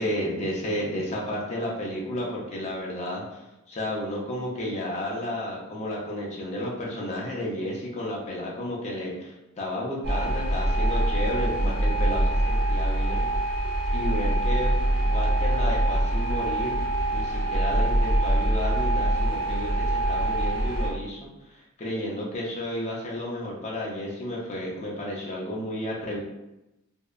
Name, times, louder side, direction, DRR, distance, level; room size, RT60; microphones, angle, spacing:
voice 1, 0.0-13.3 13.9-16.8 17.1-26.2, left 1 dB, 30° left, -4 dB, 0.5 m, -32 dB
sound 1, 10.0-20.9, right 1 dB, 50° right, 0.7 m, -24 dB
2.6 x 2.1 x 2.3 m, 0.94 s
head